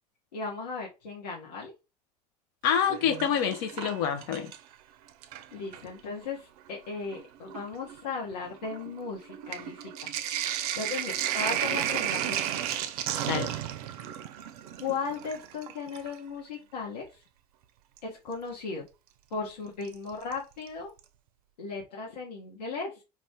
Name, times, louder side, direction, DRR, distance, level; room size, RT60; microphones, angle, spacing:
voice 1, 0.3-1.7 5.5-10.1 10.8-12.5 14.8-17.1 18.0-18.8 19.3-20.9 21.6-22.9, left 4 dB, 80° left, 0.9 m, -36 dB
voice 2, 2.6-4.5 13.3-13.5, left 8 dB, 55° left, 0.6 m, -27 dB
Sink (filling or washing), 2.7-4.7 5.1-5.9 6.7-6.8 7.1-16.2 18.0-18.1 19.9-20.3 20.7-20.8 21.0-21.1, right 11 dB, 65° right, 0.4 m, -33 dB
2.5 x 2.3 x 3.4 m
hypercardioid pair, 75°, 21 cm